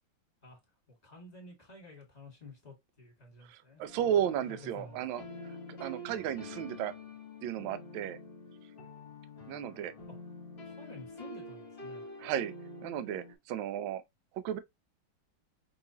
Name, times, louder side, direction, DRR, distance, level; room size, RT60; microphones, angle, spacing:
voice 1, 0.9-3.8 4.5-5.1 10.1-10.2 10.6-12.1, left 2 dB, 20° left, 1.6 m, -51 dB
voice 2, 3.5-5.2 5.7-6.9 7.4-8.2 9.5-9.9 12.2-12.5 12.8-14.0 14.3-14.6, right 10 dB, 75° right, 1.2 m, -34 dB
sound 1, 3.9-13.3, left 2 dB, 35° left, 1.2 m, -47 dB
5.3 x 2.9 x 2.8 m
omnidirectional pair, 2.3 m